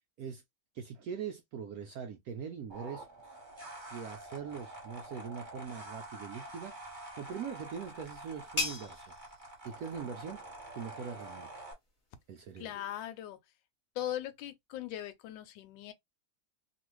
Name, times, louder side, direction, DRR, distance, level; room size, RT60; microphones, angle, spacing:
voice 1, 0.7-3.1 3.9-9.1 9.6-10.4 10.7-11.6 12.3-12.7, right 7 dB, 80° right, 0.8 m, -42 dB
sound 1, 2.7-11.7, right 1 dB, 25° right, 1.3 m, -47 dB
sound 2, 7.2-12.6, left 3 dB, 25° left, 0.8 m, -43 dB
voice 2, 12.6-13.4 13.9-15.9, left 12 dB, 75° left, 1.3 m, -39 dB
3.1 x 2.4 x 3.0 m
omnidirectional pair, 2.2 m